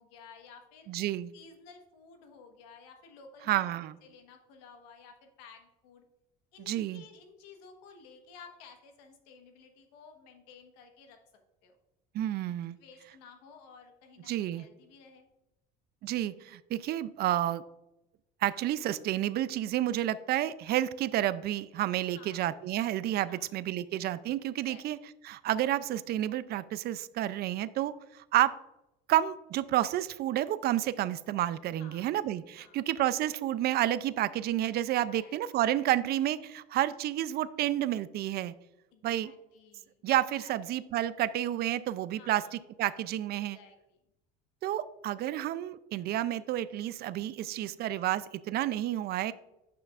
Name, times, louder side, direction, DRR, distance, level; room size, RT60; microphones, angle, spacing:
voice 1, 0.0-0.9 1.3-3.7 4.0-6.0 6.5-11.2 11.6-11.8 12.8-15.3 19.4-19.7 22.1-22.5 23.3-23.6 24.5-24.8 31.8-32.1 32.6-32.9 35.1-35.6 38.9-40.0 40.4-40.6 42.2-42.6 43.3-43.8 47.4-48.0, left 5 dB, 85° left, 5 dB, 1.3 m, -54 dB
voice 2, 0.9-1.3 3.5-3.9 6.6-7.0 12.1-12.8 14.3-14.7 16.0-17.6 18.4-25.0 25.2-28.5 29.1-38.5 39.0-39.3 40.0-43.6 44.6-49.3, right 13 dB, 50° right, 15 dB, 0.4 m, -30 dB
10.5 x 5.7 x 2.5 m, 0.92 s
supercardioid pair, 105°, 21 cm